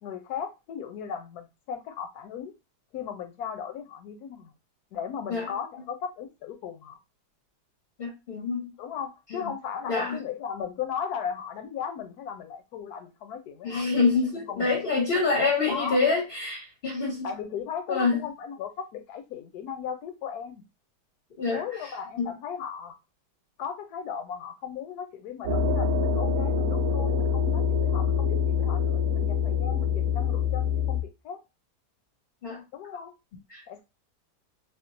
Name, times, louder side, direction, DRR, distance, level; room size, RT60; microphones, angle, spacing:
voice 1, 0.0-2.5 2.9-4.5 4.9-7.0 8.8-13.9 14.5-14.8 15.7-16.0 17.2-20.6 21.5-23.0 23.6-31.4 32.7-33.2 33.7-33.8, left 7 dB, 75° left, 1.1 m, -36 dB
voice 2, 8.0-8.7 9.4-9.5 9.9-10.2 13.6-17.3 17.9-18.2 21.4-21.6 22.2-22.3 32.4-32.6 33.5-33.6, left 4 dB, 45° left, 0.8 m, -26 dB
sound 1, 25.4-31.0, left 6 dB, 65° right, 1.0 m, -25 dB
3.6 x 2.4 x 2.5 m
omnidirectional pair, 1.8 m